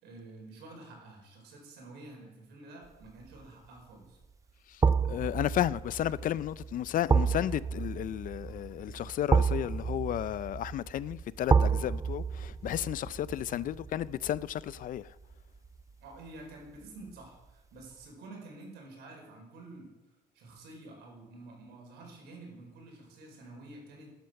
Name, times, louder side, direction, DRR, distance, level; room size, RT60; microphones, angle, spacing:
voice 1, 0.0-4.2 13.5-13.7 16.0-19.9 20.3-24.1, right 2 dB, 80° right, 5.3 m, -49 dB
sound 1, 3.0-3.4 4.8-15.8 16.1-16.3, right 5 dB, 20° right, 0.5 m, -30 dB
voice 2, 5.1-15.1, left 12 dB, 55° left, 0.5 m, -33 dB
13.0 x 10.5 x 6.5 m
cardioid pair, 110°, 17 cm